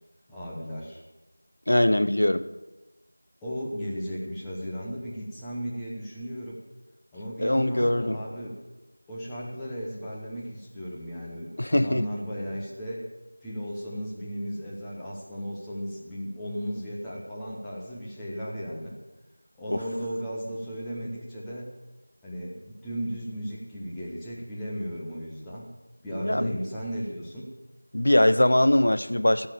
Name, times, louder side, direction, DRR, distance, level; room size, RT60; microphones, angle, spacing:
voice 1, 0.3-1.0 3.4-6.6 7.1-8.6 9.1-13.1 13.4-19.0 19.6-21.7 22.2-25.7 26.0-27.5, equal, 5° left, -8 dB, 0.9 m, -35 dB
voice 2, 1.7-2.4 7.4-8.2 11.6-12.0 19.7-19.8 26.1-26.6 27.9-29.5, left 1 dB, 60° left, 11 dB, 0.8 m, -22 dB
16.5 x 5.7 x 8.6 m, 1.1 s
figure-of-eight pair, 175°, 0 cm